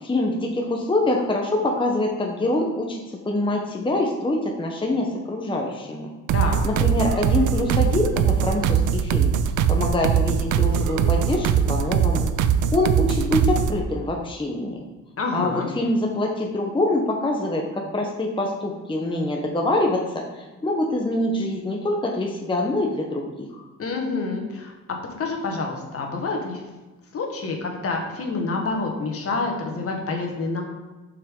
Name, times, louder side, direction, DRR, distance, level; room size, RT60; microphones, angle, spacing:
voice 1, 0.0-6.1 6.6-9.3 9.7-12.3 12.7-14.8 15.3-17.7 17.9-23.6, left 2 dB, 15° left, 0 dB, 1.0 m, -25 dB
voice 2, 6.3-6.7 15.2-15.7 23.8-24.7 25.2-26.6 27.1-30.6, left 3 dB, 50° left, 2 dB, 1.7 m, -27 dB
sound 1, 6.3-13.8, right 7 dB, 80° right, 0.5 m, -21 dB
6.6 x 5.8 x 3.8 m, 1.2 s
cardioid pair, 90°, 30 cm